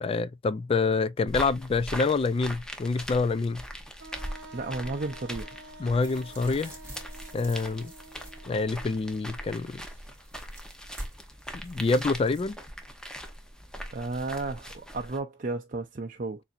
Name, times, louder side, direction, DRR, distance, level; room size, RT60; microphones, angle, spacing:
voice 1, 0.0-3.6 5.8-6.7 7.3-7.9 8.5-9.8 11.6-12.6, left 4 dB, 30° left, 0.3 m, -27 dB
sound 1, 1.3-15.2, equal, 5° left, 0.8 m, -41 dB
Wind instrument woodwind instrument, 4.0-9.8, right 1 dB, 65° right, 1.1 m, -49 dB
voice 2, 4.5-5.6 13.9-16.4, right 3 dB, 45° right, 0.5 m, -33 dB
sound 2, 6.0-12.4, right 1 dB, 15° right, 2.3 m, -48 dB
7.0 x 2.7 x 2.5 m
head